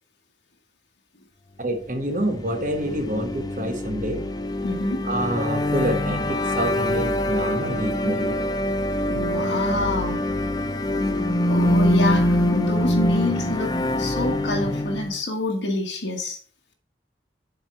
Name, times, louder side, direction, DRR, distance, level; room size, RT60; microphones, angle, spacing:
voice 1, 1.6-4.2 5.0-8.4, right 1 dB, 45° right, 6 dB, 1.1 m, -27 dB
sound 1, 2.2-15.2, left 1 dB, 20° left, 0.4 m, -24 dB
voice 2, 4.6-5.0 9.1-10.2 11.5-13.7 14.0-16.4, left 2 dB, 85° left, 1 dB, 1.4 m, -27 dB
7.2 x 4.5 x 4.4 m, 0.41 s
head